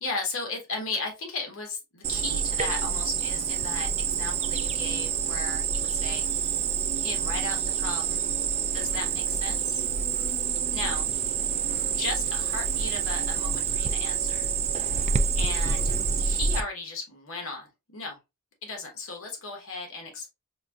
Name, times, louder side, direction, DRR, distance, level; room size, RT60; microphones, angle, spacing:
voice 1, 0.0-6.6 7.0-8.2 8.7-9.8 10.5-11.1 11.8-14.5 15.4-18.2 18.6-20.3, left 3 dB, 65° left, 2 dB, 1.2 m, -36 dB
Cricket, 2.0-16.6, right 7 dB, 30° right, 0.3 m, -27 dB
5.2 x 2.6 x 2.3 m, 0.24 s
head